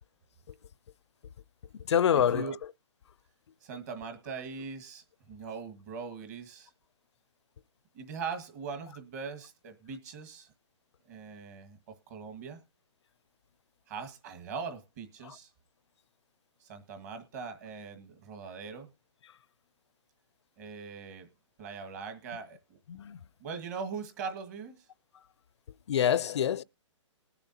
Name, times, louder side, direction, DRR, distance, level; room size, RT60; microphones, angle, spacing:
voice 1, 1.9-2.6 15.2-15.4 22.9-23.2 25.9-26.6, left 9 dB, 60° left, 0.5 m, -26 dB
voice 2, 3.6-6.7 7.9-10.5 11.1-11.8 12.1-12.6 13.9-15.5 16.6-18.9 20.6-21.3 21.6-22.8 23.4-24.9, right 5 dB, 30° right, 1.7 m, -41 dB
20.5 x 7.0 x 2.8 m
hypercardioid pair, 160°, 17 cm